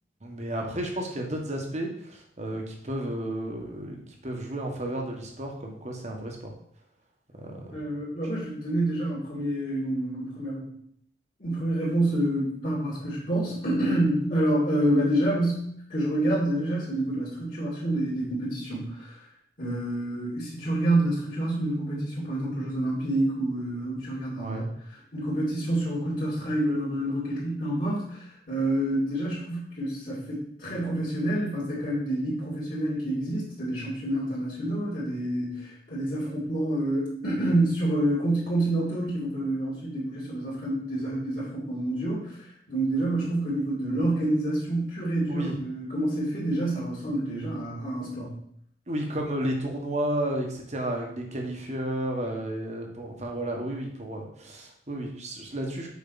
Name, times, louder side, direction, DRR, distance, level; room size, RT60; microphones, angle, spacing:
voice 1, 0.2-4.0 4.2-6.5 7.4-7.7 24.4-24.7 45.3-45.5 48.9-55.9, right 1 dB, 40° right, 1 dB, 1.4 m, -32 dB
voice 2, 7.7-10.7 11.4-19.3 19.6-48.4, right 1 dB, 50° left, -8 dB, 2.5 m, -28 dB
7.2 x 5.4 x 4.1 m, 0.68 s
head